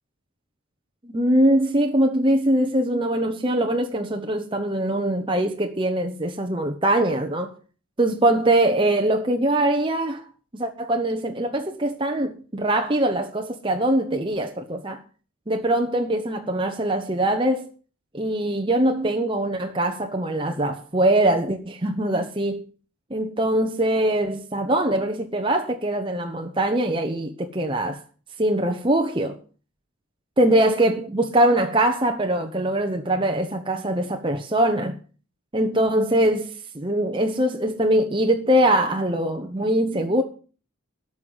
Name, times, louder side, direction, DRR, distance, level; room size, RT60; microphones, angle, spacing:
voice 1, 1.0-7.5 8.0-10.2 10.5-15.0 15.5-17.7 18.1-22.6 23.1-28.0 28.4-29.4 30.4-35.0 35.5-40.2, right 1 dB, 25° right, 1.1 m, -22 dB
13.0 x 5.8 x 9.5 m
head